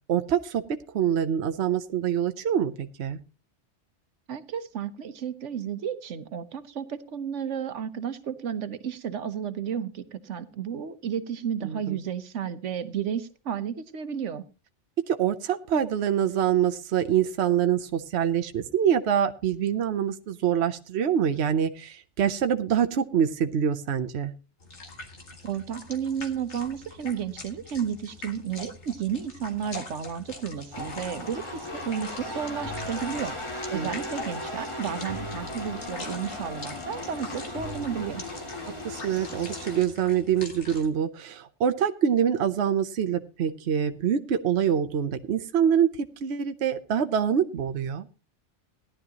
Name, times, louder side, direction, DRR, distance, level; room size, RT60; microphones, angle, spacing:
voice 1, 0.1-0.6 0.9-3.2 11.6-12.0 15.1-24.3 33.7-33.9 38.8-48.1, right 8 dB, 65° right, 8 dB, 1.0 m, -25 dB
voice 2, 4.3-14.4 25.4-33.3 33.7-38.2, right 8 dB, 85° right, 11 dB, 1.3 m, -32 dB
sound 1, 24.6-40.9, left 3 dB, 75° left, 2.2 m, -43 dB
sound 2, 30.7-39.8, left 1 dB, 25° left, 2.5 m, -36 dB
17.0 x 11.5 x 2.9 m, 0.30 s
omnidirectional pair, 1.2 m